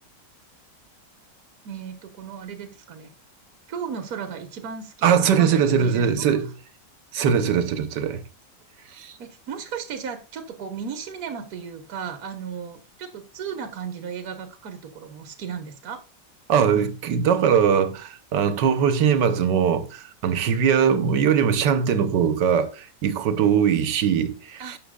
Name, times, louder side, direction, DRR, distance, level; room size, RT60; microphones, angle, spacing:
voice 1, 1.6-3.1 3.7-6.4 7.2-7.3 9.2-16.0 24.6-24.8, right 7 dB, 60° right, 1.5 m, -35 dB
voice 2, 5.0-6.5 7.1-8.2 8.9-9.1 16.5-24.8, right 7 dB, 75° right, 1.6 m, -21 dB
11.5 x 6.9 x 2.3 m
omnidirectional pair, 1.9 m